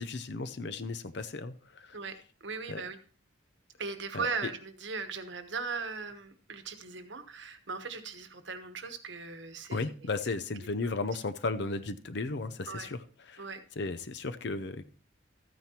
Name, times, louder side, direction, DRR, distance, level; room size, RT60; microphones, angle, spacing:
voice 1, 0.0-2.0 2.7-2.8 4.1-4.3 9.7-13.5 13.8-14.8, left 3 dB, 55° left, 11 dB, 0.6 m, -35 dB
voice 2, 2.4-3.0 3.8-9.9 12.7-12.9 13.4-13.6, right 4 dB, 65° right, 9 dB, 1.1 m, -38 dB
13.5 x 9.3 x 2.9 m, 0.40 s
head